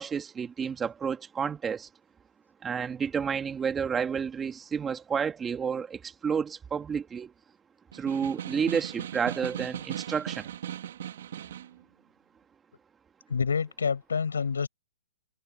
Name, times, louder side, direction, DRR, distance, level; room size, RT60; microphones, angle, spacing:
voice 1, 0.0-1.9 2.6-7.3 7.9-10.5, right 6 dB, 15° right, 2.6 m, -30 dB
Snare drum, 7.9-11.8, right 10 dB, 60° right, 3.2 m, -38 dB
voice 2, 13.3-14.7, left 5 dB, 90° left, 6.4 m, -27 dB
hypercardioid pair, 140°, 0 cm